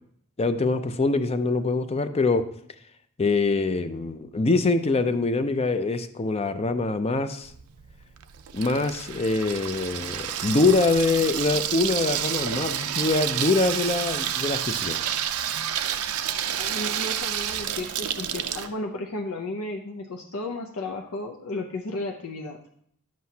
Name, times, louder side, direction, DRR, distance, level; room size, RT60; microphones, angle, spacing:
voice 1, 0.4-2.4 3.2-7.5 8.5-15.0, left 3 dB, 30° left, 10 dB, 0.5 m, -24 dB
Water tap faucet / Sink (filling or washing), 7.4-18.7, right 10 dB, 80° right, 0.5 m, -29 dB
voice 2, 16.6-22.8, left 2 dB, 80° left, 3 dB, 0.6 m, -34 dB
10.5 x 7.6 x 2.8 m, 0.67 s
head